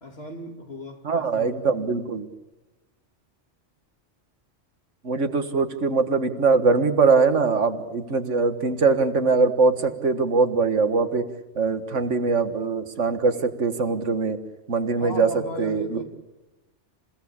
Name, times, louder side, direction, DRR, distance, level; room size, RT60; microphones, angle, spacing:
voice 1, 0.0-1.7 15.0-16.0, left 1 dB, 55° left, 3 dB, 3.4 m, -36 dB
voice 2, 1.0-2.3 5.0-11.3 11.6-14.4 14.7-16.0, right 4 dB, 85° right, 9 dB, 1.9 m, -22 dB
28.5 x 17.0 x 8.7 m, 1.1 s
omnidirectional pair, 1.2 m